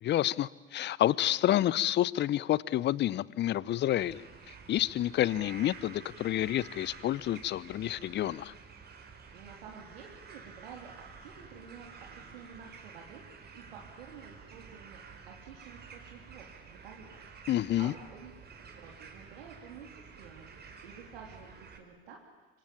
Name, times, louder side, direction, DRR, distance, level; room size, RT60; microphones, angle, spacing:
voice 1, 0.0-8.5 17.5-17.9, left 13 dB, 35° left, 22 dB, 0.8 m, -29 dB
sound 1, 4.0-21.8, right 5 dB, 30° right, 4.5 m, -51 dB
voice 2, 9.3-10.9 11.2-11.9 12.1-13.2 13.5-15.0 15.3-17.2 17.8-18.3 18.6-20.5 20.8-22.2, right 6 dB, 70° right, 0 dB, 3.5 m, -50 dB
25.5 x 25.0 x 8.7 m, 1.2 s
figure-of-eight pair, 75°, 32 cm